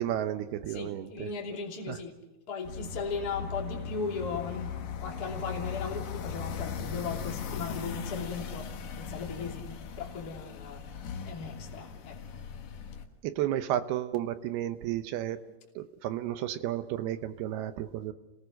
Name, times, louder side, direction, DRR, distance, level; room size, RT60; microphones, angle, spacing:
voice 1, 0.0-1.3 1.9-2.0 13.2-15.4 15.8-18.1, right 12 dB, 75° right, 2.7 m, -32 dB
voice 2, 0.7-2.2 2.5-10.8 11.2-12.2, left 5 dB, 25° left, 2.9 m, -37 dB
sound 1, 2.7-13.0, left 6 dB, 60° left, 3.0 m, -38 dB
29.5 x 18.5 x 6.4 m
omnidirectional pair, 4.7 m